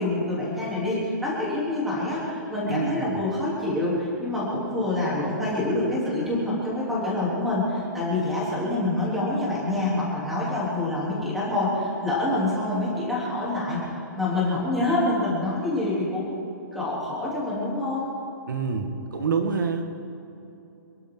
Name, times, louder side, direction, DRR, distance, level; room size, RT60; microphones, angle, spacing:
voice 1, 0.0-13.8 14.2-16.3 16.7-18.1, left 2 dB, ahead, -8 dB, 3.6 m, -26 dB
voice 2, 2.7-3.1 18.5-19.9, right 5 dB, 75° right, 6 dB, 2.1 m, -27 dB
28.5 x 11.5 x 4.1 m, 2.9 s
hypercardioid pair, 180°, 11 cm